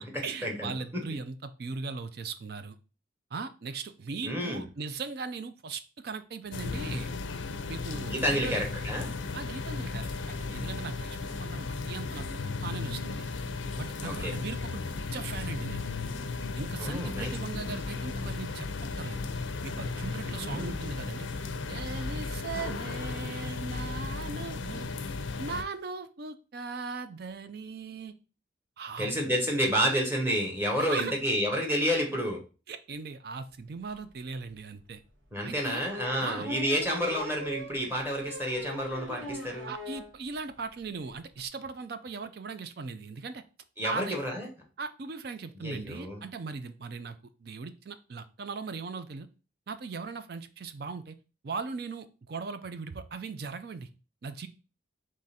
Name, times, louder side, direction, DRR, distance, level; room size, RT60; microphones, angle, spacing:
voice 1, 0.0-2.8 3.3-7.1 7.7-8.6 9.3-13.3 13.8-14.8 15.1-15.9 16.6-18.7 19.0-19.2 19.6-21.3 21.7-24.9 25.4-28.1 28.8-29.1 30.8-31.1 32.7-35.0 35.4-35.9 36.2-36.5 39.7-43.4 43.8-44.2 44.8-49.3 49.7-51.1 51.4-53.9 54.2-54.5, right 4 dB, 55° right, 10 dB, 0.4 m, -39 dB
voice 2, 4.2-4.6 8.1-9.1 14.0-14.3 16.8-17.3 20.4-20.7 29.0-32.4 35.3-39.7 43.8-44.5 45.6-46.2, equal, 10° right, 1 dB, 1.0 m, -29 dB
sound 1, 6.5-25.6, left 4 dB, 75° left, 0.5 m, -35 dB
sound 2, 34.0-34.1 34.5-34.6 35.8-40.1 40.5-40.6 40.8-40.9 41.1-41.4, right 1 dB, 80° right, 2.2 m, -41 dB
3.8 x 3.2 x 4.1 m, 0.34 s
head